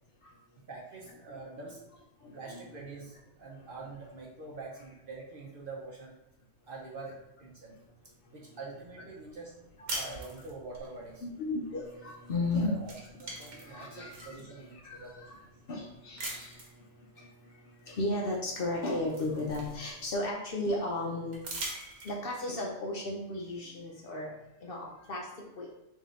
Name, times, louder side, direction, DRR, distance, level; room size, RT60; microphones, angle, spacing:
voice 1, 0.7-1.8 2.3-6.1 6.7-7.7 8.3-9.5 9.9-11.2 12.4-12.9 13.2-15.2, right 3 dB, 55° right, -3 dB, 0.7 m, -45 dB
voice 2, 2.2-2.6 9.8-10.3 11.2-12.8 13.1-15.4 15.7-16.6 17.2-17.5 17.8-21.4 22.0-24.3 24.6-25.3 25.6-25.7, left 2 dB, 60° left, -2 dB, 0.7 m, -35 dB
sound 1, 9.9-10.9 12.3-12.5 12.8-14.4 15.0-15.1 16.2-16.8 18.2-18.3 18.7-20.2 21.3-22.4, right 2 dB, 90° right, 1.3 m, -41 dB
3.6 x 2.7 x 3.6 m, 0.92 s
omnidirectional pair, 1.3 m